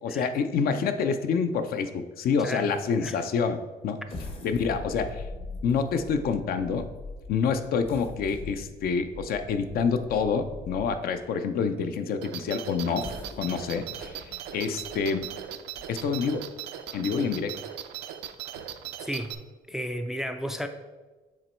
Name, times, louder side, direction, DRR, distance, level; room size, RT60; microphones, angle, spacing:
voice 1, 0.0-3.6 3.8-4.0 4.4-5.2 5.6-6.9 7.3-13.1 13.4-15.2 15.9-16.5 16.9-17.6, left 5 dB, 60° left, 8 dB, 0.5 m, -27 dB
voice 2, 2.4-2.7 3.0-3.2 19.0-19.3 19.7-20.7, equal, 5° right, 7 dB, 0.3 m, -33 dB
sound 1, 4.1-11.2 11.8-11.9 12.8-16.3 16.8-16.9 17.3-17.5, left 2 dB, 35° left, 0.8 m, -42 dB
sound 2, 12.2-19.4, right 10 dB, 80° right, 0.5 m, -39 dB
7.3 x 3.0 x 4.4 m, 1.2 s
cardioid pair, 110°, 17 cm